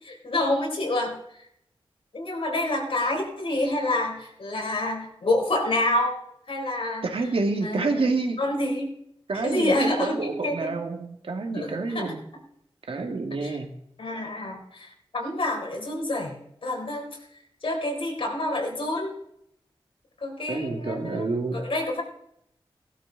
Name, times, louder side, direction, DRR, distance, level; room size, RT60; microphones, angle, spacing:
voice 1, 0.0-1.2 2.1-6.2 6.5-7.1 7.6-8.0 8.4-8.9 9.3-10.7 11.5-12.1 13.4-13.6 14.0-16.4 16.6-17.1 17.6-19.1 20.2-21.2 21.5-22.0, left 1 dB, 70° left, 1 dB, 4.1 m, -27 dB
voice 2, 7.0-8.4 9.3-12.2 12.9-13.7 20.5-21.6, right 3 dB, 75° right, 3 dB, 2.1 m, -28 dB
16.5 x 12.5 x 4.0 m, 0.74 s
wide cardioid pair, 75°, 10 cm